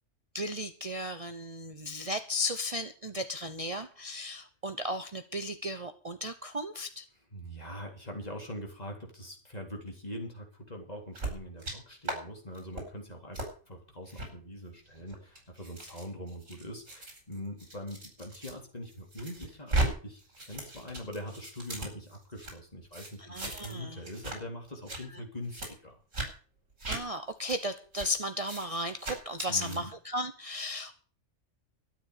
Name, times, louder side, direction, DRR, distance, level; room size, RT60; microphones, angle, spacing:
voice 1, 0.3-7.0 23.2-24.0 26.9-31.0, left 1 dB, 30° right, 8 dB, 1.0 m, -35 dB
voice 2, 7.3-13.4 13.7-26.0 29.5-29.9, equal, 30° left, 1 dB, 3.7 m, -43 dB
sound 1, 11.1-11.7 12.0-12.2 12.5-12.8 13.3-13.5 14.1-14.3 14.9-18.5 18.9-19.9 20.2-22.5 22.9-23.8 24.0-24.4 24.7-25.0 25.5-25.7 26.1-26.3 26.8-27.0 27.5-27.6 27.9-28.1 28.4-28.7 29.0-29.8, right 2 dB, 75° right, 5.6 m, -36 dB
13.0 x 9.8 x 6.8 m, 0.41 s
omnidirectional pair, 1.3 m